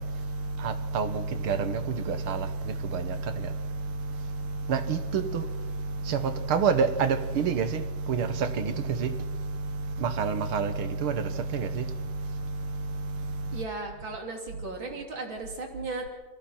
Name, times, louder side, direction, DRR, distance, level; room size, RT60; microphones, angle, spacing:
voice 1, 0.0-13.6, right 5 dB, 90° right, 2.1 m, -29 dB
voice 2, 13.5-16.1, right 3 dB, 65° right, 3.9 m, -36 dB
28.5 x 24.0 x 4.4 m
omnidirectional pair, 2.3 m